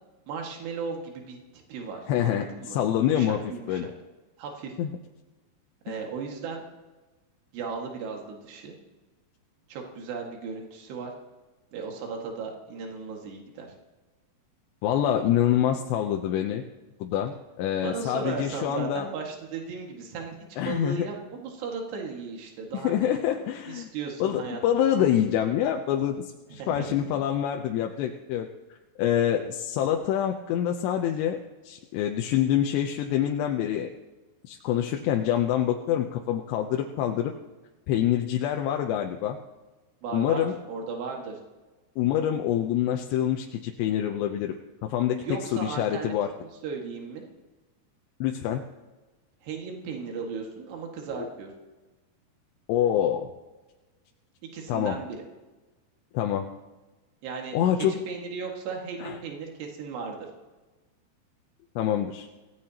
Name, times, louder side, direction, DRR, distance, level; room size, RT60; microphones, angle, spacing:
voice 1, 0.3-1.4 1.7-3.9 4.4-4.8 5.9-6.6 7.5-8.8 9.7-11.1 11.7-13.7 17.8-20.4 20.7-23.2 23.7-24.9 26.6-27.0 40.0-41.4 45.2-47.3 49.4-51.5 54.5-55.2 57.2-57.6 57.9-60.2, right 5 dB, 80° right, 1 dB, 4.0 m, -36 dB
voice 2, 2.1-3.4 3.7-3.9 4.8-5.0 5.9-6.0 14.8-16.6 17.0-19.1 20.6-21.1 22.8-23.9 24.2-28.5 29.0-33.9 34.4-37.3 37.9-39.4 40.1-40.6 42.0-44.5 44.8-45.2 45.5-46.3 48.2-48.6 51.2-51.3 52.7-53.3 54.7-55.0 56.1-56.5 57.5-58.1 59.0-59.2 61.8-62.3, left 10 dB, 90° left, 3 dB, 3.0 m, -26 dB
25.5 x 17.5 x 2.9 m, 1.2 s
omnidirectional pair, 4.8 m